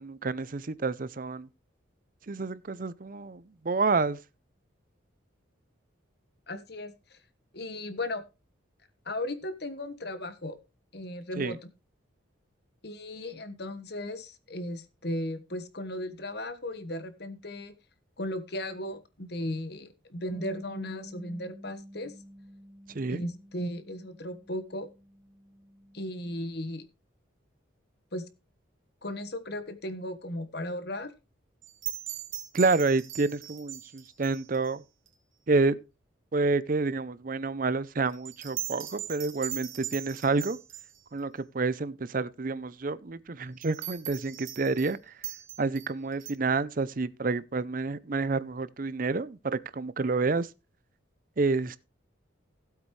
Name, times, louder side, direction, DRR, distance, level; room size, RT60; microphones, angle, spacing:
voice 1, 0.0-1.5 2.3-4.2 11.4-11.6 22.9-23.2 32.5-34.8 35.5-35.8 36.3-40.6 41.1-45.1 45.6-50.5 51.4-51.8, right 3 dB, 45° right, 0.5 m, -29 dB
voice 2, 6.5-7.2 7.5-8.2 9.0-10.6 10.9-11.6 12.8-17.7 18.2-22.1 23.1-24.9 25.9-26.9 28.1-28.2 29.0-31.1, left 1 dB, 55° left, 1.4 m, -36 dB
Bass guitar, 20.3-26.5, equal, 15° right, 1.4 m, -49 dB
sound 1, 31.6-34.8 35.1-35.2 38.1-41.0 43.6-44.9 45.2-46.3, right 13 dB, 75° right, 2.3 m, -40 dB
16.0 x 8.2 x 3.2 m
head